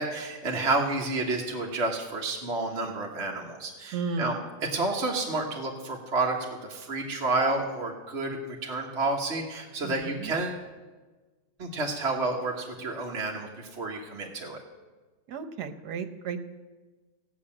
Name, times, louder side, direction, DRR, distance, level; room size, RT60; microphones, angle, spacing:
voice 1, 0.0-4.4 4.7-10.6 11.6-14.6, right 2 dB, 45° right, -1 dB, 1.5 m, -30 dB
voice 2, 3.9-4.4 9.8-10.3 15.3-16.4, right 5 dB, 85° right, 10 dB, 1.4 m, -34 dB
16.5 x 6.0 x 8.7 m, 1.3 s
omnidirectional pair, 1.7 m